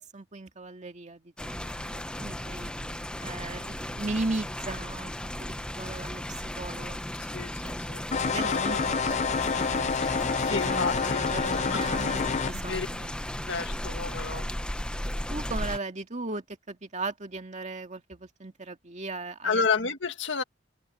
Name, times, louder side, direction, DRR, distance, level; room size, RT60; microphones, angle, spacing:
voice 1, 0.0-2.7 3.2-5.1 5.4-6.2 6.6-7.0 8.2-9.2 9.5-13.1 15.3-19.6, right 3 dB, 40° right, 2.1 m, -37 dB
sound 1, 1.4-15.8, left 1 dB, 5° left, 0.8 m, -35 dB
voice 2, 7.3-8.0 8.3-8.8 10.4-11.8 12.7-12.9 13.5-14.5 19.4-20.4, left 5 dB, 70° left, 1.9 m, -31 dB
sound 2, 8.1-12.5, left 5 dB, 35° left, 0.6 m, -28 dB
head